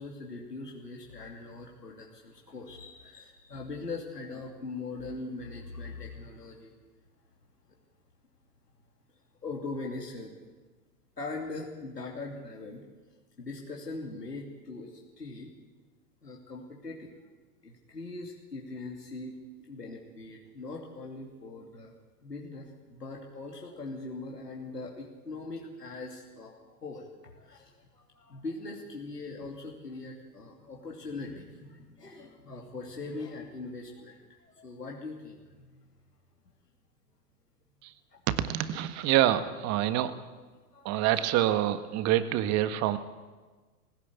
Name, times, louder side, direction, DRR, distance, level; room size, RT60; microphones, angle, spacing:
voice 1, 0.0-6.8 9.4-10.3 11.2-12.8 13.4-15.5 16.2-17.1 17.6-35.9 38.1-38.2 40.7-41.1, left 3 dB, 90° left, -1 dB, 2.9 m, -41 dB
voice 2, 38.3-40.1 40.8-43.0, right 13 dB, 35° right, 11 dB, 1.5 m, -26 dB
19.5 x 16.5 x 8.3 m, 1.4 s
figure-of-eight pair, 100°, 47 cm